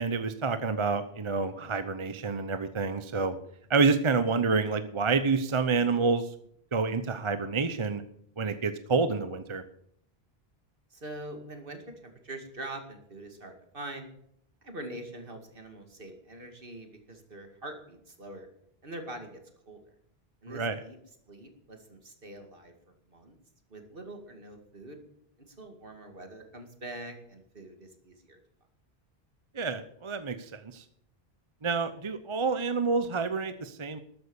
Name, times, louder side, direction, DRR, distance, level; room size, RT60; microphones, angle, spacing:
voice 1, 0.0-3.4 3.7-6.3 6.7-8.0 8.4-9.6 20.5-20.8 29.5-30.8 31.6-34.0, right 4 dB, 30° right, 11 dB, 0.7 m, -28 dB
voice 2, 10.9-14.1 14.6-18.5 18.8-19.4 19.7-19.8 20.4-21.0 21.3-22.7 23.1-23.4 23.7-25.0 25.4-28.4, right 1 dB, 60° right, 5 dB, 2.4 m, -44 dB
13.5 x 9.0 x 7.0 m, 0.70 s
omnidirectional pair, 1.0 m